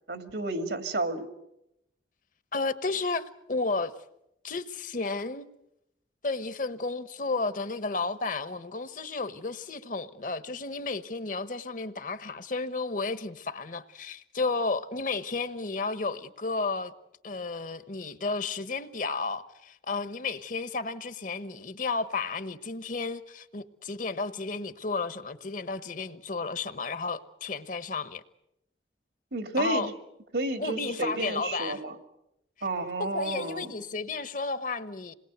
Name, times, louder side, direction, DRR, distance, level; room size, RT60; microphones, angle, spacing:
voice 1, 0.1-1.3 29.3-29.9 30.3-31.9 32.6-33.7, right 2 dB, 80° right, 2.2 m, -31 dB
voice 2, 2.5-3.9 4.4-5.5 6.2-16.9 17.2-28.2 29.6-29.9 30.6-31.8 33.0-35.1, left 3 dB, 45° left, 1.1 m, -32 dB
27.5 x 21.0 x 8.2 m
head